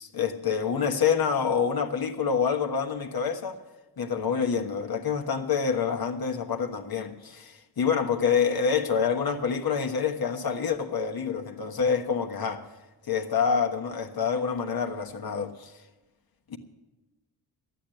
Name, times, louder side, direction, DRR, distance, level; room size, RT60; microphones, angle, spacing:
voice 1, 0.0-3.5 4.0-12.7 13.1-15.7 16.5-16.6, left 6 dB, 60° left, 1.3 m, -27 dB
12.0 x 9.1 x 8.9 m
cardioid pair, 80°, 41 cm